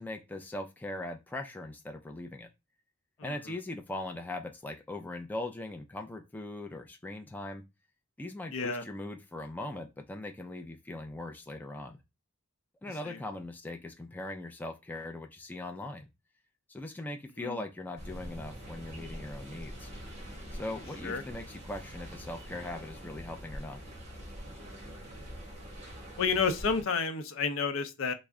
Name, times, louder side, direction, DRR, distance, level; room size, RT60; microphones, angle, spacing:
voice 1, 0.0-2.5 3.2-7.6 8.2-12.0 12.8-16.1 16.7-19.9 20.5-23.8, left 2 dB, 10° left, 0.3 m, -40 dB
voice 2, 8.5-8.8 13.0-13.2 17.4-17.6 21.0-21.2 26.2-28.1, left 5 dB, 70° left, 0.5 m, -30 dB
sound 1, 18.0-26.8, equal, 30° right, 1.0 m, -44 dB
3.3 x 2.0 x 3.6 m
head